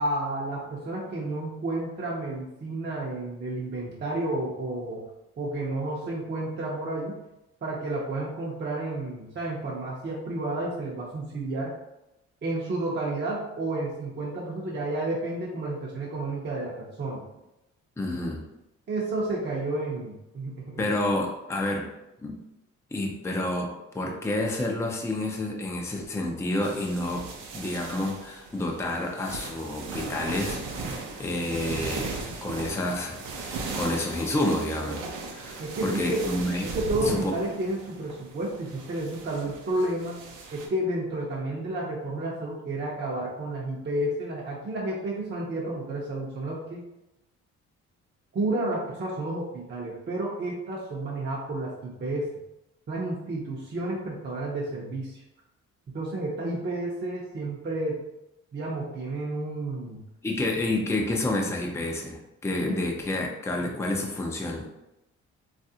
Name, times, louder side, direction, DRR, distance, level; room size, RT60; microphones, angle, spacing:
voice 1, 0.0-5.0 5.4-7.2 7.6-11.7 12.4-17.2 18.9-20.9 35.6-36.3 36.6-40.2 40.5-46.9 48.3-52.3 52.9-55.2 55.9-58.0 58.5-60.0 62.7-62.8, right 2 dB, 35° right, -4 dB, 0.7 m, -31 dB
voice 2, 18.0-18.4 20.8-21.9 22.2-22.4 22.9-27.3 27.5-32.1 32.4-35.0 35.3-36.7 37.1-37.3 60.2-64.7, left 1 dB, 10° left, 1 dB, 0.4 m, -29 dB
sound 1, 26.6-40.7, right 3 dB, 85° right, 0.6 m, -37 dB
3.1 x 2.4 x 2.7 m, 0.92 s
cardioid pair, 90°, 30 cm